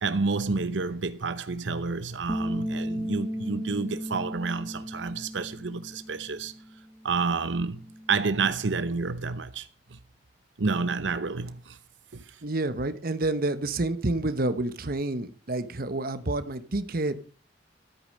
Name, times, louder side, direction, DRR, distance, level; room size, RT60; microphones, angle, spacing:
voice 1, 0.0-6.5 7.0-7.8 8.1-10.0 10.6-11.8 12.1-12.4, right 4 dB, 80° right, 0.8 m, -29 dB
Bass guitar, 2.3-8.5, equal, 5° left, 1.2 m, -36 dB
voice 2, 12.4-17.2, right 2 dB, 55° right, 1.1 m, -29 dB
13.0 x 8.7 x 6.6 m
head